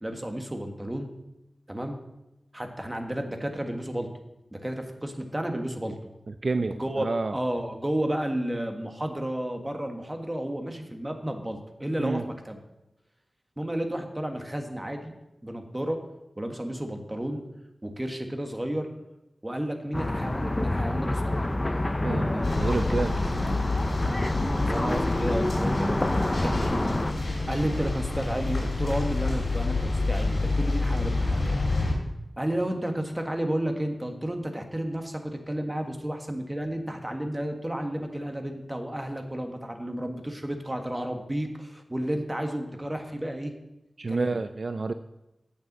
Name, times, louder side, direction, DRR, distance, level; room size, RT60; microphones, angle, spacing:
voice 1, 0.0-1.1 1.7-2.0 2.5-4.1 4.5-6.0 6.6-7.0 7.3-12.6 13.6-15.1 15.4-16.0 16.4-17.4 17.8-18.9 19.4-21.5 24.7-27.0 27.5-31.6 32.4-43.5 44.1-44.4, right 1 dB, 20° right, 4 dB, 1.5 m, -32 dB
voice 2, 6.4-7.4 12.0-12.2 22.0-23.2 44.0-44.9, right 3 dB, 55° right, 10 dB, 0.4 m, -29 dB
sound 1, 19.9-27.1, left 1 dB, 25° left, 0.7 m, -27 dB
sound 2, 22.4-31.9, left 2 dB, 55° left, 3.4 m, -28 dB
8.9 x 6.9 x 7.4 m, 0.93 s
wide cardioid pair, 75°, 0 cm